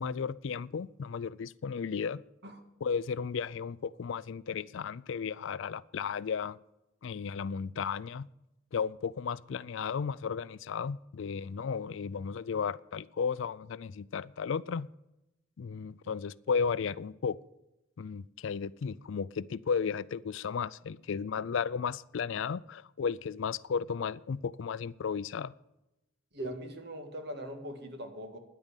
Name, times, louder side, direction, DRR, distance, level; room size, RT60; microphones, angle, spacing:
voice 1, 0.0-2.2 2.8-6.6 7.0-8.3 8.7-14.9 15.6-17.4 18.0-25.5, left 6 dB, 65° left, 0.4 m, -34 dB
voice 2, 26.3-28.4, right 1 dB, 55° right, 1.9 m, -41 dB
10.5 x 8.8 x 8.2 m
head